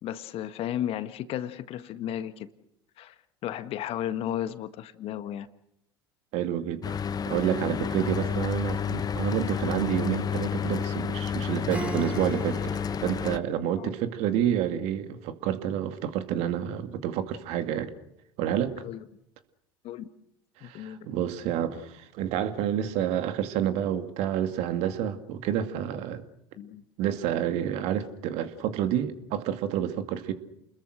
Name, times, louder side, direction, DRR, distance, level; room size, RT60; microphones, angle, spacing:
voice 1, 0.0-2.5 3.0-3.1 3.4-5.5 13.7-13.9 18.8-19.0 19.8-20.1 20.6-21.0 26.6-26.8, left 11 dB, 50° left, 1.6 m, -34 dB
voice 2, 6.3-7.0 7.3-17.9 18.4-18.8 20.6-26.2 27.0-30.3, right 10 dB, 60° right, 2.3 m, -29 dB
Mechanical fan, 6.8-13.4, left 7 dB, 30° left, 1.1 m, -30 dB
Acoustic guitar / Strum, 11.7-16.0, right 1 dB, 10° right, 4.3 m, -39 dB
29.5 x 21.0 x 6.5 m
hypercardioid pair, 70°, 12 cm